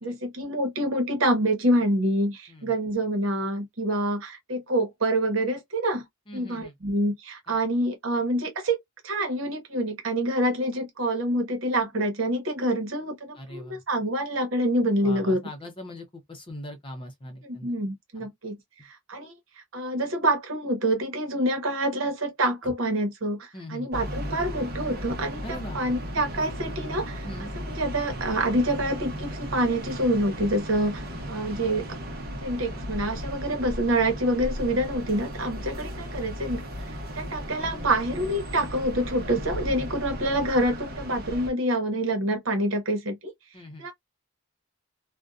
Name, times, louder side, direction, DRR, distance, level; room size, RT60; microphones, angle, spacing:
voice 1, 0.0-6.0 6.3-15.5 17.4-18.6 18.8-19.3 19.7-31.9 32.4-36.9 37.2-43.3 43.8-43.9, right 1 dB, 70° right, 1.0 m, -27 dB
voice 2, 6.3-6.7 7.5-7.6 13.4-13.8 15.0-17.7 18.2-18.3 22.6-22.7 23.5-23.9 25.4-25.8 27.2-27.5 31.1-31.2 43.5-43.8, left 1 dB, 25° left, 0.6 m, -41 dB
sound 1, 23.9-41.5, equal, 50° right, 0.8 m, -36 dB
2.6 x 2.2 x 2.3 m
head